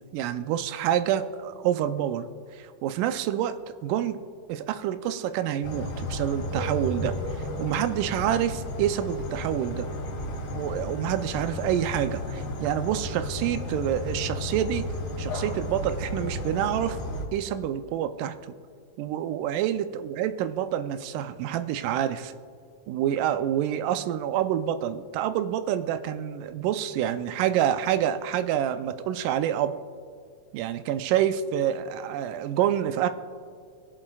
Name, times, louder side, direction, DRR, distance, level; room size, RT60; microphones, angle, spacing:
voice 1, 0.1-2.3 2.6-3.6 3.8-4.2 4.5-9.9 10.6-14.9 15.2-17.0 17.3-18.4 19.0-22.3 22.9-29.8 30.5-33.1, right 10 dB, 90° right, 10 dB, 2.1 m, -27 dB
sound 1, 5.6-17.3, left 1 dB, 75° left, 3.0 m, -33 dB
21.5 x 7.3 x 2.3 m, 2.2 s
omnidirectional pair, 3.6 m